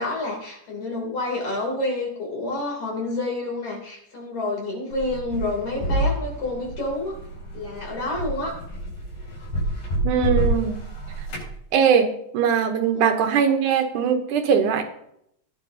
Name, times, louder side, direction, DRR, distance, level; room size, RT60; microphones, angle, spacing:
voice 1, 0.0-7.2 7.5-8.6 12.9-13.1, left 2 dB, 50° left, -1 dB, 4.0 m, -28 dB
sound 1, 4.9-11.5, right 1 dB, 90° left, 6.0 m, -28 dB
voice 2, 10.0-10.8 11.7-12.1 12.3-14.8, right 7 dB, 75° right, 5 dB, 2.4 m, -20 dB
17.5 x 9.4 x 2.8 m, 0.74 s
omnidirectional pair, 3.8 m